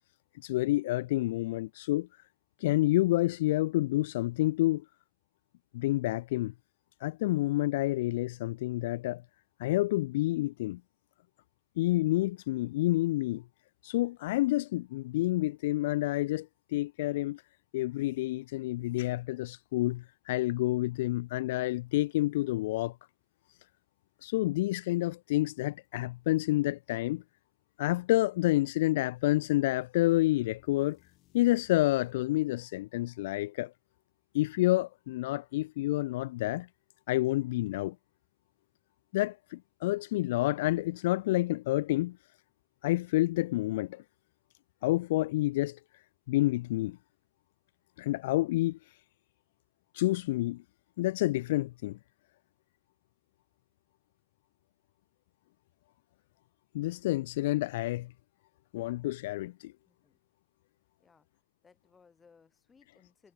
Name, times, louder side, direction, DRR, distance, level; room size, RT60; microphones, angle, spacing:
voice 1, 0.4-2.1 2.6-4.8 5.7-6.5 7.0-9.2 9.6-10.8 11.8-13.4 13.8-17.4 17.7-23.0 24.2-27.2 27.8-31.0 31.3-33.7 34.3-36.7 37.1-38.0 39.1-42.2 42.8-44.0 44.8-45.8 46.3-47.0 48.0-48.8 49.9-50.6 51.0-52.0 56.7-58.1 58.7-59.7, left 17 dB, 90° left, 0.6 m, -29 dB
sound 1, 30.1-32.2, left 18 dB, 60° left, 6.6 m, -64 dB
voice 2, 59.9-60.2 61.0-61.3 61.6-63.3, left 5 dB, 20° left, 7.8 m, -63 dB
supercardioid pair, 110°, 0 cm